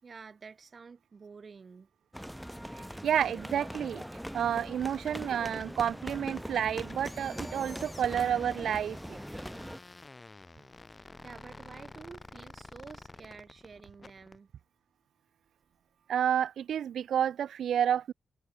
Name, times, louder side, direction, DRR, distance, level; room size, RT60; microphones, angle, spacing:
voice 1, 0.0-1.9 6.1-6.4 10.3-10.4 10.9-14.5, right 5 dB, 50° right, 5.7 m, -50 dB
sound 1, 2.1-9.8, equal, ahead, 3.1 m, -41 dB
voice 2, 3.0-4.0 4.3-9.2 16.1-18.1, right 9 dB, 80° right, 0.6 m, -30 dB
sound 2, 4.7-14.4, left 3 dB, 30° left, 4.9 m, -50 dB
cardioid pair, 70°, 0 cm